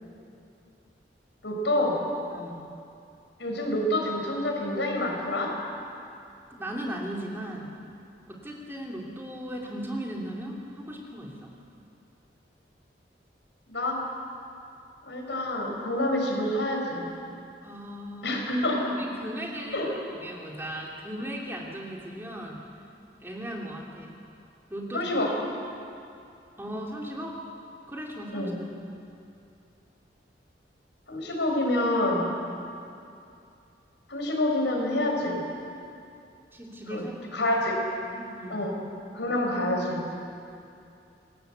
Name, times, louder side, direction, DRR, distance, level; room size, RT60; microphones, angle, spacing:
voice 1, 1.4-2.0 3.4-5.6 13.7-14.0 15.1-17.1 18.2-19.0 19.7-19.9 24.9-25.4 28.3-28.6 31.1-32.4 34.1-35.5 36.9-37.1 37.3-37.7 38.5-38.8 39.1-40.1, left 1 dB, 85° left, 1 dB, 5.8 m, -27 dB
voice 2, 2.3-2.7 6.5-7.8 8.3-11.5 17.6-18.4 18.9-22.6 23.2-24.1 24.7-25.1 26.6-27.4 27.9-28.5 36.5-37.5 38.0-38.7, equal, 15° right, -2 dB, 3.0 m, -37 dB
27.0 x 20.0 x 8.2 m, 2.6 s
head